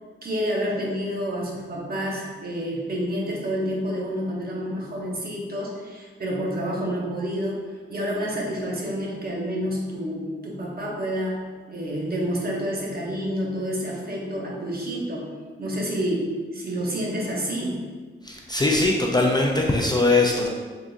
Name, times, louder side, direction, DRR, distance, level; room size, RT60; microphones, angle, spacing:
voice 1, 0.2-7.6 7.9-15.3 15.6-17.8, equal, 50° right, -3 dB, 0.9 m, -29 dB
voice 2, 18.3-20.5, left 2 dB, 20° left, -1 dB, 0.3 m, -21 dB
3.9 x 3.5 x 2.5 m, 1.5 s
wide cardioid pair, 110°, 20 cm